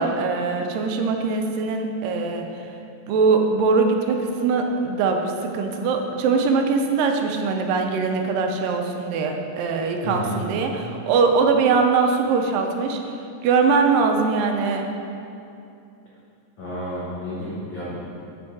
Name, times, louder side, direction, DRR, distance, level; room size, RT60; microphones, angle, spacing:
voice 1, 0.0-2.4 3.1-13.0 13.4-14.9, right 4 dB, 85° right, 4 dB, 2.3 m, -21 dB
voice 2, 10.0-10.4 16.6-18.0, equal, 75° left, -9 dB, 1.1 m, -31 dB
8.8 x 4.4 x 4.7 m, 2.7 s
omnidirectional pair, 3.9 m